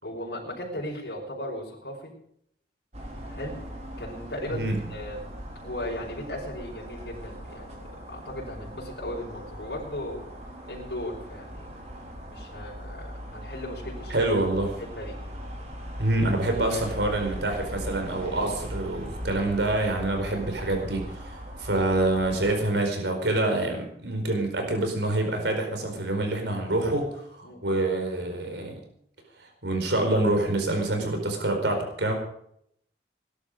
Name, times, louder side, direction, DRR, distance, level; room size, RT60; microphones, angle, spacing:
voice 1, 0.0-2.1 3.3-3.6 4.0-10.3 10.7-11.7 12.3-14.3 14.8-15.2 16.7-16.8 27.4-27.6, left 1 dB, 75° left, -4 dB, 5.5 m, -37 dB
sound 1, 2.9-22.6, equal, 40° right, 4.1 m, -40 dB
voice 2, 4.5-4.8 14.1-14.7 16.0-28.8 29.4-32.1, right 2 dB, 85° right, 4 dB, 4.7 m, -26 dB
20.0 x 12.0 x 5.2 m, 0.69 s
head